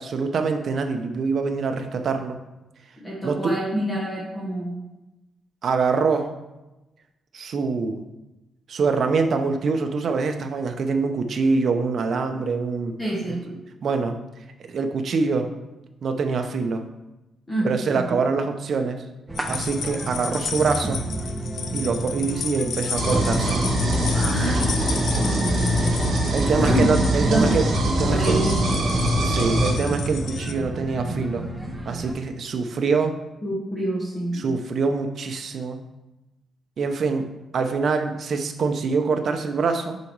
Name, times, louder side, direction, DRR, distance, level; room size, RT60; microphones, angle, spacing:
voice 1, 0.0-2.4 3.2-3.6 5.6-6.3 7.3-8.0 8.7-13.0 13.8-14.2 14.7-15.5 16.0-16.9 17.6-19.0 19.5-21.0 21.7-23.7 26.3-28.4 29.2-31.5 31.8-33.2 34.3-35.8 36.8-37.3 37.5-40.0, right 4 dB, 45° right, 6 dB, 0.7 m, -24 dB
voice 2, 3.0-4.8 13.0-13.6 17.5-18.2 24.1-26.1 26.6-27.5 28.0-28.6 33.4-34.4, right 1 dB, 20° left, -5 dB, 1.1 m, -27 dB
sound 1, 19.3-32.1, right 2 dB, 5° right, 0.6 m, -31 dB
sound 2, 19.4-30.5, left 7 dB, 60° left, 0.5 m, -34 dB
sound 3, 22.9-29.7, equal, 60° right, 2.2 m, -23 dB
6.8 x 4.9 x 4.6 m, 1.0 s
wide cardioid pair, 175°, 0 cm